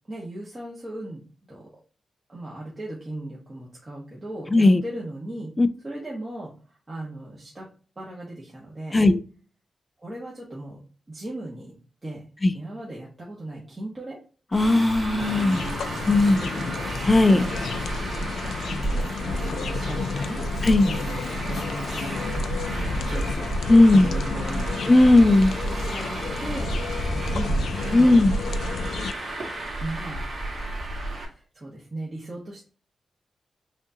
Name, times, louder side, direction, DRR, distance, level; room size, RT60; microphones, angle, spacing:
voice 1, 0.1-1.2 1.5-1.7 2.3-5.5 5.8-7.7 8.0-9.0 10.0-10.8 11.1-11.7 12.0-12.2 12.5-14.2 16.1-16.8 17.2-17.5 18.7-20.4 20.8-22.4 23.1-23.5 23.9-25.1 25.6-26.8 27.1-28.2 29.8-30.7 31.1-32.6, right 1 dB, 20° right, 1.1 m, -37 dB
voice 2, 4.5-4.8 5.6-5.7 8.9-9.2 12.4-12.5 14.5-15.6 16.1-16.4 17.1-17.5 20.6-20.9 23.7-24.1 24.9-25.5 27.9-28.3, left 2 dB, 20° left, 0.4 m, -16 dB
Traffic noise roadway noise, 14.5-31.2, right 1 dB, 40° right, 1.7 m, -31 dB
sound 1, 15.2-29.1, left 5 dB, 85° left, 0.4 m, -33 dB
6.2 x 2.5 x 2.7 m
wide cardioid pair, 160°, 0 cm